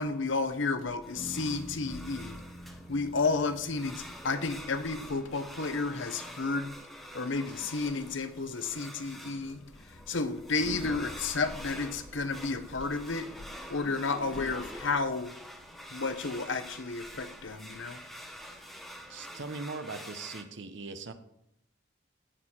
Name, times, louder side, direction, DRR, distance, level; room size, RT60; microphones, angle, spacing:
voice 1, 0.0-6.8 7.1-15.4 15.9-18.0, left 3 dB, 65° left, 10 dB, 0.9 m, -32 dB
sound 1, 1.0-20.4, equal, ahead, 0.9 m, -47 dB
sound 2, 1.2-5.2, equal, 25° left, 2.7 m, -47 dB
voice 2, 19.1-21.1, right 3 dB, 60° right, 9 dB, 1.0 m, -40 dB
16.5 x 6.7 x 4.4 m, 0.77 s
head